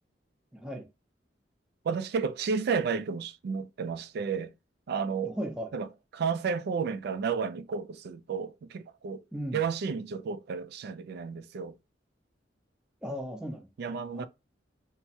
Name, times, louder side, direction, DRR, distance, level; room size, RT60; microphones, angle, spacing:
voice 1, 0.5-0.9 5.3-5.7 9.3-9.6 13.0-14.3, equal, 5° right, 0.5 m, -37 dB
voice 2, 1.8-4.5 4.9-5.4 5.7-5.9 6.1-9.2 9.5-11.8 13.8-14.3, right 5 dB, 60° right, 0.3 m, -32 dB
3.3 x 2.0 x 2.7 m
head